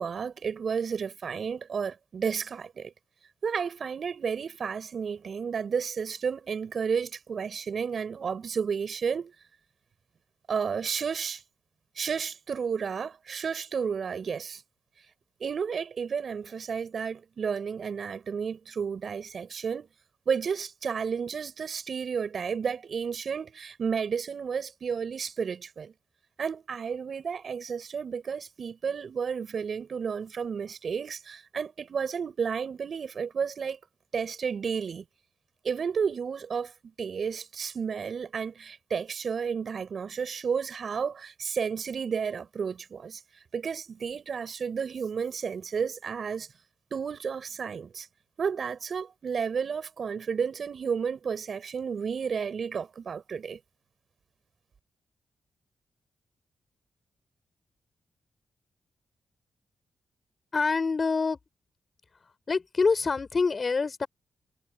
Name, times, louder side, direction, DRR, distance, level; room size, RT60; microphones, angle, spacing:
voice 1, 0.0-2.9 3.4-9.3 10.5-11.4 12.0-14.6 15.4-19.9 20.3-25.9 26.4-33.8 34.1-35.0 35.6-36.7 37.0-43.2 43.5-46.5 46.9-48.1 48.4-53.6, right 6 dB, 60° right, 5.3 m, -32 dB
voice 2, 60.5-61.4 62.5-64.1, left 4 dB, 45° left, 5.8 m, -26 dB
supercardioid pair, 50°, 0 cm